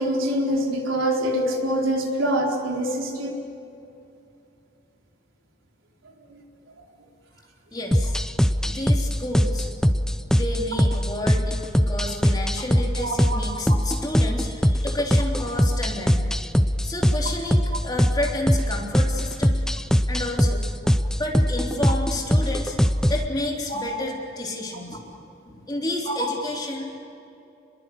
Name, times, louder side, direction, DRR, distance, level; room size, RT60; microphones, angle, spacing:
voice 1, 0.0-3.4 6.3-6.4 13.0-13.2 13.7-13.8 23.7-23.8 26.1-26.2, right 1 dB, 85° right, 0 dB, 4.3 m, -25 dB
voice 2, 7.7-8.2 8.7-9.7 10.3-16.4 16.8-19.7 20.1-20.7 21.1-22.8 23.1-25.2 25.4-27.0, left 1 dB, 20° left, -1 dB, 3.6 m, -30 dB
sound 1, 7.9-23.3, equal, 5° left, 0.6 m, -22 dB
29.0 x 22.0 x 8.5 m, 2.7 s
head